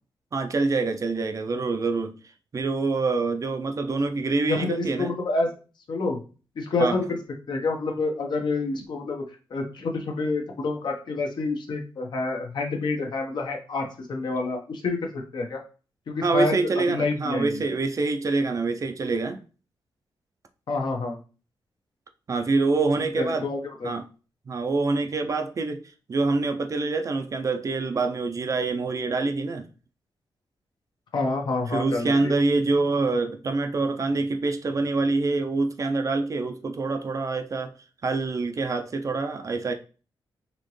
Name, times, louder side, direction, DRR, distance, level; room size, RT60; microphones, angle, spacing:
voice 1, 0.3-2.2 2.5-5.1 6.8-7.0 16.2-19.4 22.3-23.5 23.8-24.0 24.5-25.8 26.1-29.7 31.7-37.7 38.0-39.7, right 3 dB, 40° right, 0.5 m, -25 dB
voice 2, 4.4-5.5 5.9-6.2 6.6-7.2 7.5-9.2 9.5-15.6 16.1-16.5 16.9-17.6 20.7-21.2 23.2-23.9 31.1-32.3, left 3 dB, 60° left, 1.0 m, -28 dB
4.2 x 3.0 x 3.1 m
wide cardioid pair, 110°, 9 cm